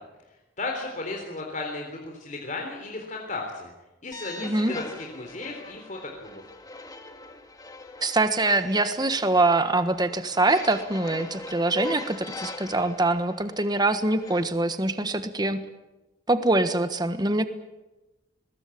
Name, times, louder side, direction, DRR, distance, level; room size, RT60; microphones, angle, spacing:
voice 1, 0.6-3.7 4.0-6.4, left 3 dB, 40° left, 1 dB, 3.7 m, -35 dB
sound 1, 4.1-14.4, left 2 dB, 20° left, 2.0 m, -41 dB
voice 2, 4.4-4.8 8.0-15.6 16.3-17.5, right 2 dB, 20° right, 9 dB, 1.4 m, -24 dB
23.0 x 21.0 x 8.6 m, 1.1 s
head